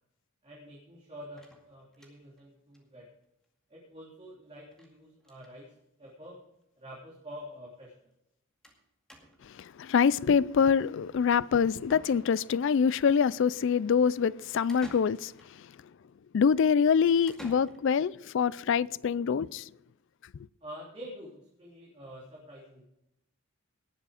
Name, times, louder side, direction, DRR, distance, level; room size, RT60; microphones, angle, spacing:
voice 1, 0.4-3.0 3.7-6.4 6.8-8.1 20.6-22.8, equal, 30° right, 3.2 m, -47 dB
sound 1, 1.4-2.4 2.7-2.8 3.1-3.2 3.4-3.5 4.7-4.9 5.2-5.6 6.4-6.5 6.8-6.9 8.6-8.8 9.1-9.6 11.4-11.5 11.9-12.7 14.7-15.6 17.3-18.2, equal, 5° left, 2.1 m, -51 dB
voice 2, 9.4-15.3 15.6-15.7 16.3-19.7, left 6 dB, 60° left, 0.3 m, -25 dB
18.5 x 7.5 x 4.9 m
head